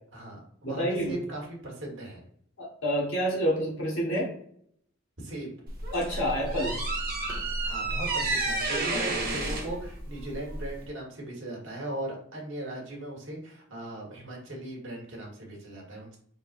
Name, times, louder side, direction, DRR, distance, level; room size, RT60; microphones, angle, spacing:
voice 1, 0.1-2.2 5.2-5.5 7.6-16.2, right 1 dB, 55° right, -2 dB, 1.4 m, -38 dB
voice 2, 0.6-1.1 2.6-4.3 5.9-6.8 8.9-9.0, equal, 60° left, -5 dB, 1.4 m, -28 dB
sound 1, 5.7-10.9, right 2 dB, 40° right, 1.1 m, -31 dB
4.0 x 3.7 x 2.5 m, 0.64 s
head